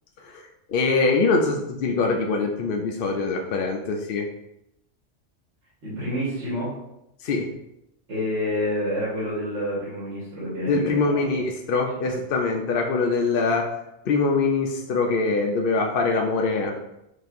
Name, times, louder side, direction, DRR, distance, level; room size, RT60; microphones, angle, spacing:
voice 1, 0.7-4.3 7.2-7.5 10.7-13.7 14.1-16.9, left 3 dB, 60° left, 1 dB, 0.7 m, -23 dB
voice 2, 5.8-6.7 8.1-11.2 12.0-12.1, left 1 dB, 75° right, -8 dB, 1.7 m, -28 dB
6.4 x 2.8 x 2.5 m, 0.83 s
omnidirectional pair, 1.2 m